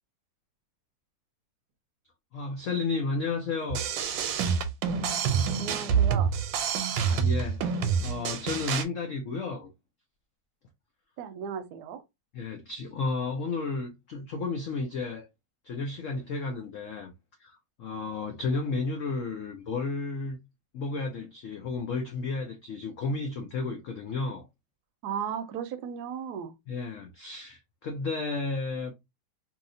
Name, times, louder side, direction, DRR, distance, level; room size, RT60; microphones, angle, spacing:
voice 1, 2.3-3.8 7.0-9.7 12.3-15.3 15.6-17.1 17.4-20.4 20.7-24.5 26.7-28.9, left 3 dB, 75° left, 0.7 m, -32 dB
sound 1, 3.7-8.8, right 7 dB, 90° right, 1.3 m, -27 dB
voice 2, 5.6-6.3 11.2-12.0 25.0-26.5, right 8 dB, 70° right, 1.0 m, -35 dB
3.0 x 2.7 x 2.5 m
omnidirectional pair, 2.0 m